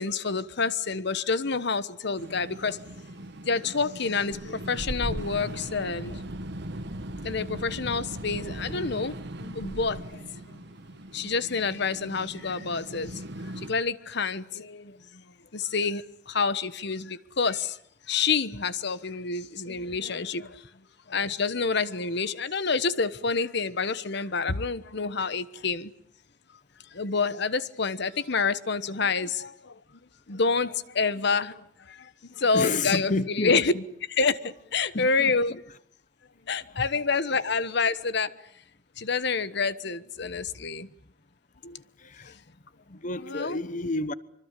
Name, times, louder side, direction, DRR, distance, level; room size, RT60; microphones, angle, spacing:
voice 1, 0.0-2.8 3.4-6.2 7.2-10.2 11.1-13.1 13.7-15.0 15.5-17.8 18.1-20.6 21.1-25.9 26.9-29.7 30.3-31.6 31.9-32.1 32.4-33.7 34.1-35.5 36.5-38.3 39.0-40.9 41.6-41.8 43.2-43.6, left 4 dB, 65° left, 1.2 m, -28 dB
sound 1, 2.2-13.7, right 1 dB, 65° right, 1.4 m, -38 dB
voice 2, 32.5-33.8 34.9-35.6 42.0-42.3 42.9-44.1, left 2 dB, 45° left, 1.1 m, -30 dB
25.5 x 24.5 x 8.3 m
head